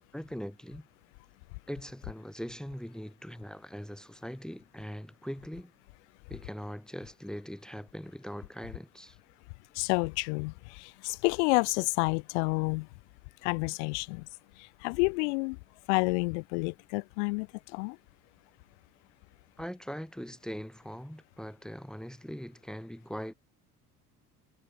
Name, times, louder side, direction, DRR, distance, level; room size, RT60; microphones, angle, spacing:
voice 1, 0.1-0.9 1.7-5.7 6.3-9.2 19.6-23.3, equal, ahead, 4.7 m, -41 dB
voice 2, 9.8-12.9 13.4-14.3 14.6-15.6 15.9-18.0, left 33 dB, 50° left, 0.4 m, -29 dB
figure-of-eight pair, 65°, 47 cm